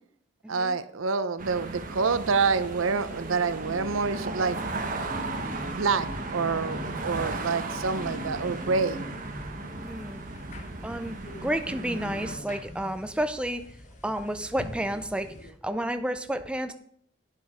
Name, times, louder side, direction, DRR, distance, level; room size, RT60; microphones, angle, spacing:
voice 1, 0.5-4.6 5.7-9.0, right 4 dB, 90° right, 13 dB, 0.7 m, -27 dB
sound 1, 1.4-12.4, right 2 dB, 40° right, 1.1 m, -36 dB
sound 2, 3.6-15.5, left 1 dB, 35° left, 1.1 m, -44 dB
voice 2, 9.8-10.2 10.5-11.2 11.4-13.8 14.0-16.7, right 1 dB, 5° right, 8 dB, 0.4 m, -31 dB
9.3 x 7.4 x 5.0 m, 0.66 s
head